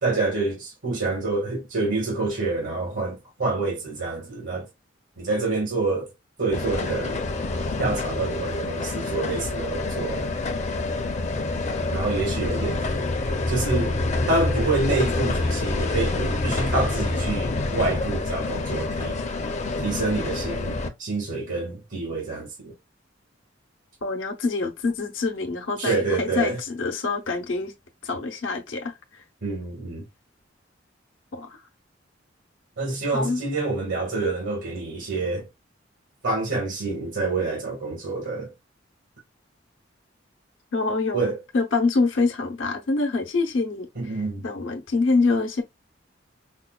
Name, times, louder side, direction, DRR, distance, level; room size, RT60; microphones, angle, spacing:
voice 1, 0.0-4.7 5.2-6.1 6.4-7.2 7.8-10.3 11.9-13.1 13.5-13.9 14.3-19.2 19.8-22.7 25.8-26.6 29.4-30.0 32.8-35.5 36.2-38.5 41.1-41.4 43.9-44.4, right 3 dB, 80° right, 1.6 m, -27 dB
sound 1, 6.5-20.9, left 2 dB, 40° left, 0.5 m, -27 dB
voice 2, 24.0-27.7 28.0-28.9 31.3-31.6 33.1-33.4 40.7-43.9 44.4-45.6, left 3 dB, 85° left, 0.8 m, -25 dB
5.1 x 2.2 x 2.3 m
head